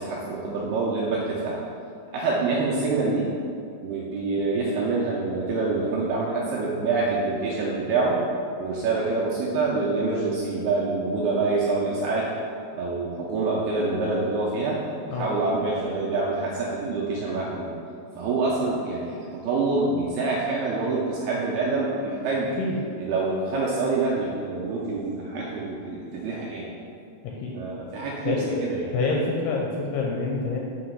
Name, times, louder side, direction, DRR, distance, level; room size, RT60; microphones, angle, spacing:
voice 1, 0.0-1.6 2.1-3.3 3.8-8.2 8.6-12.3 12.7-17.7 18.2-22.6 23.0-26.7 27.5-28.9, right 3 dB, 85° right, -5 dB, 2.3 m, -26 dB
voice 2, 28.9-30.6, left 3 dB, 80° left, -2 dB, 2.3 m, -27 dB
8.4 x 2.9 x 5.5 m, 2.4 s
omnidirectional pair, 5.1 m